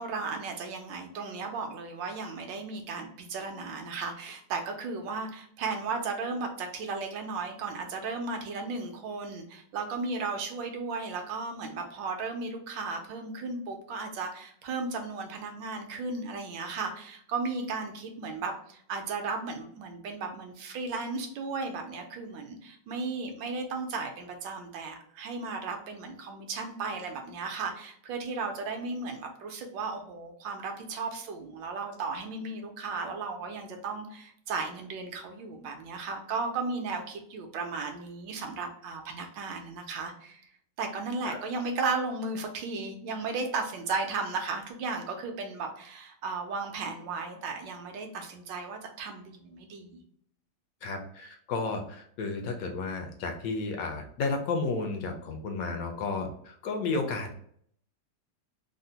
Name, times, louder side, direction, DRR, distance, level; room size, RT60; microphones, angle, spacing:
voice 1, 0.0-40.4 40.8-50.0, right 4 dB, 75° right, 4 dB, 1.3 m, -35 dB
voice 2, 50.8-57.3, left 3 dB, 80° left, 4 dB, 0.8 m, -32 dB
3.7 x 2.1 x 2.7 m, 0.64 s
omnidirectional pair, 2.1 m